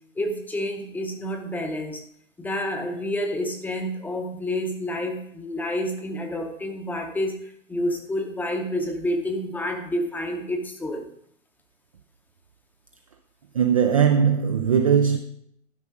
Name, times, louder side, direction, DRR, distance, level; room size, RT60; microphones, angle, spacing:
voice 1, 0.2-2.0 2.4-7.4 7.7-11.1, left 1 dB, 5° left, 0.7 m, -29 dB
voice 2, 13.5-15.2, right 7 dB, 30° right, 0.3 m, -19 dB
12.0 x 5.2 x 5.1 m
hypercardioid pair, 130°, 40 cm